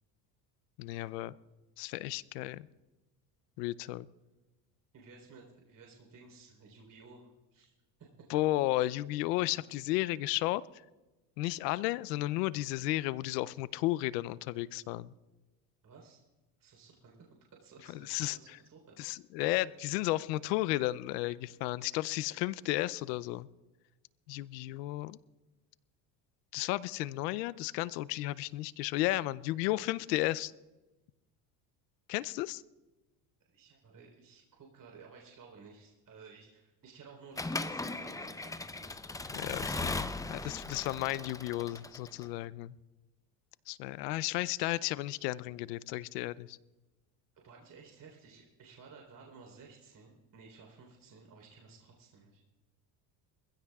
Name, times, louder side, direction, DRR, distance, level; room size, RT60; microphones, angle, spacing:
voice 1, 0.8-1.3 1.8-2.7 3.6-4.1 8.3-10.6 11.4-15.1 17.9-18.4 19.0-23.5 24.3-25.2 26.5-30.5 32.1-32.6 39.3-39.6 40.3-42.8 43.7-46.6, left 17 dB, 85° left, 19 dB, 0.6 m, -33 dB
voice 2, 4.9-7.7 8.0-8.3 15.8-16.2 16.6-17.3 17.6-19.2 33.5-39.0 39.4-39.9 47.4-52.4, right 4 dB, 40° right, 0 dB, 3.9 m, -55 dB
Accelerating revving vroom / Mechanisms, 37.4-42.3, left 3 dB, 10° left, 0.6 m, -38 dB
24.5 x 16.0 x 2.4 m, 1.1 s
supercardioid pair, 95°, 47 cm